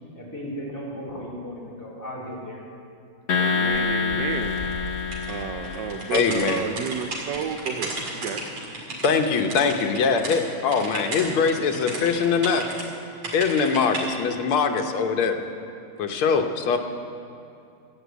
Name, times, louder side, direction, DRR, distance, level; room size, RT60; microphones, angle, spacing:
voice 1, 0.1-2.6, equal, 10° left, -6 dB, 3.3 m, -35 dB
sound 1, 3.3-6.8, left 5 dB, 60° left, 0.6 m, -27 dB
voice 2, 3.3-4.6 5.3-8.4, right 8 dB, 70° right, 6 dB, 1.1 m, -31 dB
Bird, 3.7-6.9 7.3-7.5 7.8-8.0 8.8-8.9, left 2 dB, 25° left, 1.9 m, -40 dB
sound 2, 5.1-10.4 10.7-12.8 13.2-14.1, right 2 dB, 90° right, 3.2 m, -34 dB
voice 3, 6.1-6.6 9.0-12.6 13.3-15.4 16.0-16.8, left 5 dB, 90° left, 5 dB, 1.9 m, -22 dB
14.5 x 9.1 x 8.1 m, 2.6 s
omnidirectional pair, 2.3 m